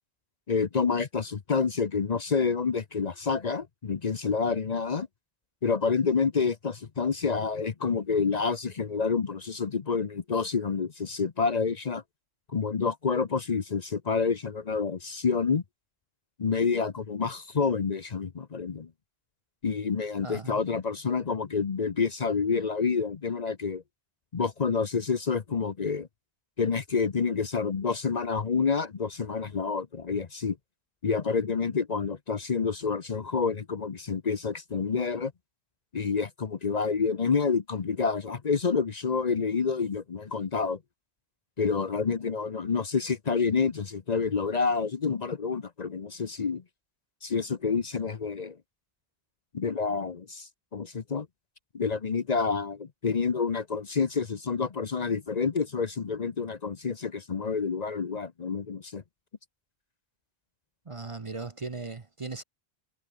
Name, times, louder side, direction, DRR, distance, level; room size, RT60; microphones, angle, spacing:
voice 1, 0.5-5.1 5.6-12.0 12.5-15.6 16.4-18.9 19.6-23.8 24.3-26.1 26.6-30.6 31.0-35.3 35.9-40.8 41.6-46.6 47.2-48.6 49.5-51.3 51.7-59.0, left 5 dB, 45° left, 0.9 m, -28 dB
voice 2, 20.2-20.8 60.9-62.4, right 3 dB, 35° right, 0.9 m, -38 dB
omnidirectional pair, 1.1 m